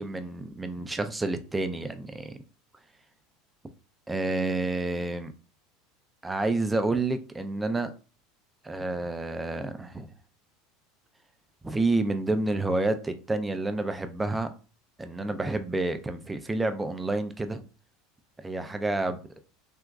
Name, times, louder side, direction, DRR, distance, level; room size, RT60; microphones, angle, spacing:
voice 1, 0.0-2.4 4.1-5.3 6.2-7.9 8.6-10.1 11.6-14.5 15.0-17.6 18.4-19.2, right 2 dB, 15° right, 0.4 m, -29 dB
3.5 x 2.9 x 2.3 m
hypercardioid pair, 90°, 0 cm